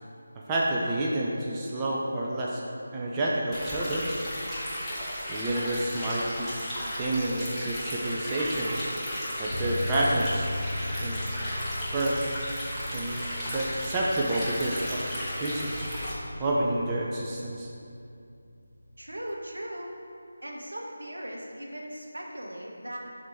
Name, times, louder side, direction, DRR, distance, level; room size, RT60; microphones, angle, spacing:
voice 1, 0.5-2.6 2.9-4.2 5.3-6.5 7.0-8.9 9.4-10.5 11.0-11.2 11.9-12.3 12.9-13.2 13.5-15.9 16.4-17.7, right 1 dB, 15° right, -5 dB, 0.5 m, -29 dB
Stream, 3.5-16.1, equal, 10° left, 1.1 m, -34 dB
sound 1, 9.5-19.2, left 1 dB, 65° left, 1.1 m, -38 dB
voice 2, 19.0-20.0 20.4-23.0, right 1 dB, 75° right, -1 dB, 1.1 m, -38 dB
6.1 x 4.0 x 4.4 m, 2.6 s
figure-of-eight pair, 160°, 0 cm